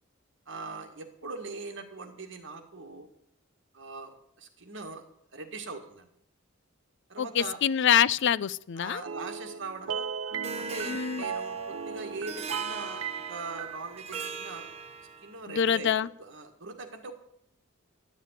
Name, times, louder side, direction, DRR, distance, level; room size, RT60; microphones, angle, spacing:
voice 1, 0.5-3.1 3.7-5.0 5.3-6.1 7.1-7.6 8.8-10.1 10.6-14.7 15.2-15.9 16.2-17.1, right 3 dB, 65° right, 5 dB, 1.9 m, -41 dB
voice 2, 7.2-9.0 10.9-11.2 15.5-16.1, left 8 dB, 60° left, 19 dB, 0.4 m, -25 dB
sound 1, 9.0-15.1, right 7 dB, 85° right, 0.7 m, -37 dB
Harp, 10.4-15.4, right 3 dB, 30° right, 0.8 m, -41 dB
11.0 x 7.4 x 9.6 m, 0.73 s
head